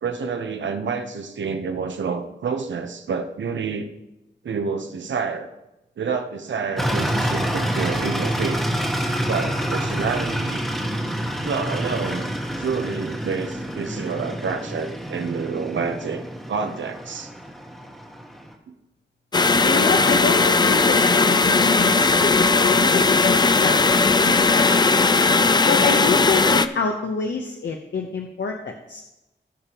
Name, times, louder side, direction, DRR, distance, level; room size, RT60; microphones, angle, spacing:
voice 1, 0.0-3.9 4.4-5.5 6.0-8.6 9.3-10.7 11.4-12.3 12.6-17.3, right 5 dB, 80° right, 7 dB, 0.9 m, -28 dB
sound 1, 6.8-18.5, equal, ahead, 1.2 m, -27 dB
sound 2, 19.3-26.7, left 4 dB, 25° left, 0.3 m, -17 dB
voice 2, 19.6-25.0 25.7-29.0, left 4 dB, 75° left, 2 dB, 0.9 m, -27 dB
18.0 x 6.9 x 3.0 m, 0.95 s
wide cardioid pair, 170°, 19 cm